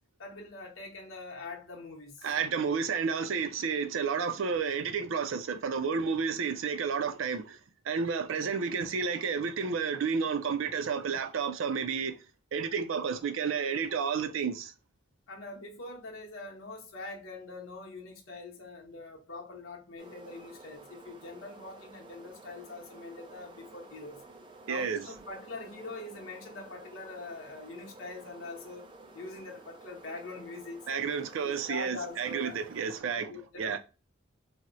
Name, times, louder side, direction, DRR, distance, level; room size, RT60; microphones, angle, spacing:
voice 1, 0.2-2.3 15.3-24.2 24.7-28.9 29.1-30.9 31.4-32.6 33.1-33.8, left 3 dB, 90° left, 0.8 m, -43 dB
voice 2, 2.2-7.6 7.8-12.2 12.5-14.7 24.7-25.0 30.9-33.3 33.6-33.8, right 6 dB, 85° right, 0.4 m, -31 dB
sound 1, 20.0-33.0, right 2 dB, 25° right, 0.4 m, -52 dB
4.1 x 2.0 x 2.5 m
head